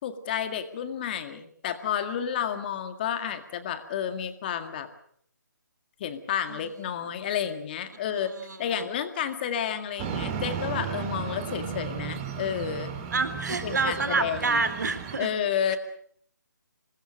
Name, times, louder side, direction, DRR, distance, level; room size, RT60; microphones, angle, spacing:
voice 1, 0.0-4.9 6.0-8.3 8.6-12.9 13.6-14.6 15.2-15.8, left 8 dB, 30° left, 9 dB, 2.0 m, -31 dB
voice 2, 6.5-7.0 8.1-8.9 13.1-15.3 15.7-15.8, right 4 dB, 65° right, 11 dB, 3.6 m, -29 dB
sound 1, 10.0-15.2, right 7 dB, 20° right, 3.4 m, -34 dB
26.0 x 20.5 x 6.5 m, 0.64 s
figure-of-eight pair, 150°, 10 cm